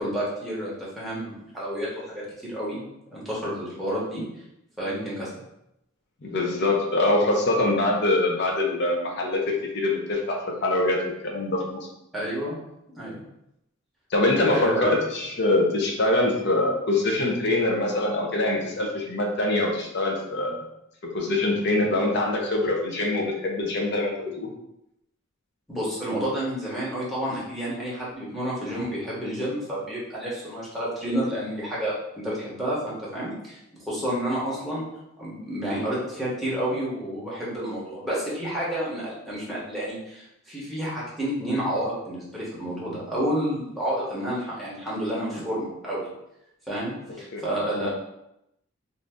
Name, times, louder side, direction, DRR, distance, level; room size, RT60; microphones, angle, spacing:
voice 1, 0.0-2.8 3.1-4.2 4.8-5.3 12.1-12.6 13.0-13.2 14.5-14.9 25.7-33.6 33.9-34.9 35.2-46.1 46.7-47.9, equal, ahead, -8 dB, 0.9 m, -30 dB
voice 2, 6.2-11.0 11.2-11.9 14.1-20.7 21.1-24.5 47.3-47.4 47.7-47.9, left 2 dB, 55° left, 0 dB, 0.7 m, -24 dB
2.6 x 2.5 x 3.4 m, 0.84 s
head